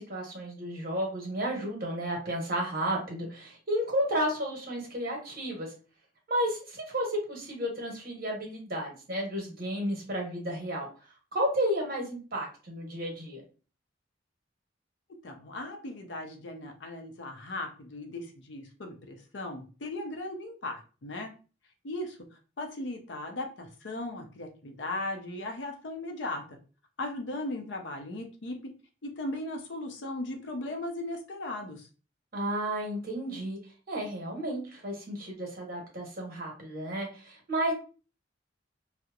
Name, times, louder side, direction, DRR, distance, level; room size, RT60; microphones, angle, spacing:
voice 1, 0.0-5.7 6.3-10.9 11.3-13.4 32.3-33.6 33.9-37.7, equal, 55° right, 0 dB, 1.0 m, -32 dB
voice 2, 15.2-21.3 21.8-22.2 22.6-26.6 27.0-28.6 29.0-31.8, left 2 dB, 70° left, 3 dB, 0.6 m, -37 dB
2.8 x 2.0 x 2.3 m, 0.36 s
head